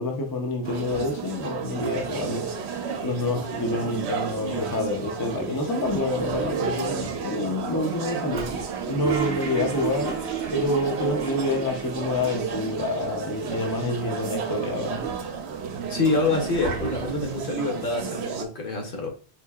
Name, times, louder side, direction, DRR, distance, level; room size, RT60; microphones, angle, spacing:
voice 1, 0.0-10.2 10.5-15.0, left 2 dB, 30° left, 0.4 m, -28 dB
sound 1, 0.6-18.5, right 6 dB, 80° right, 0.9 m, -32 dB
Toilet flush, 8.3-12.7 13.0-13.1 13.3-14.1 14.6-17.4, right 6 dB, 50° right, 0.7 m, -33 dB
voice 2, 15.9-19.1, left 3 dB, 55° left, 1.0 m, -26 dB
4.4 x 2.7 x 2.3 m
omnidirectional pair, 1.1 m